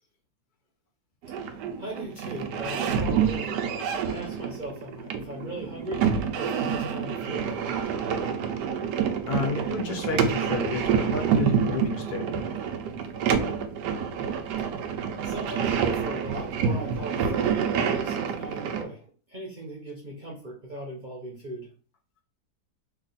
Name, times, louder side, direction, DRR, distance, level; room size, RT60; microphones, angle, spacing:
sound 1, 1.2-18.8, right 7 dB, 85° right, 1.2 m, -28 dB
voice 1, 1.3-7.8 14.8-14.9 15.2-21.7, right 1 dB, 35° right, -3 dB, 0.8 m, -38 dB
voice 2, 9.3-12.3, left 4 dB, 70° left, 2 dB, 1.3 m, -30 dB
3.4 x 2.5 x 3.9 m, 0.40 s
omnidirectional pair, 1.8 m